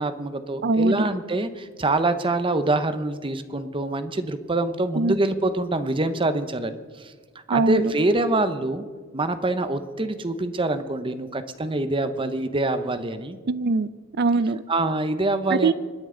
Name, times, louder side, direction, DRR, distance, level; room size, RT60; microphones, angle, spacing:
voice 1, 0.0-7.1 7.5-8.8 9.1-13.4 14.7-15.7, right 2 dB, 25° right, 10 dB, 0.8 m, -25 dB
voice 2, 0.6-1.1 5.0-5.2 7.5-7.9 13.5-13.9 14.2-14.6 15.5-15.7, right 3 dB, 50° right, 17 dB, 0.5 m, -21 dB
26.0 x 10.0 x 3.8 m, 1.6 s
head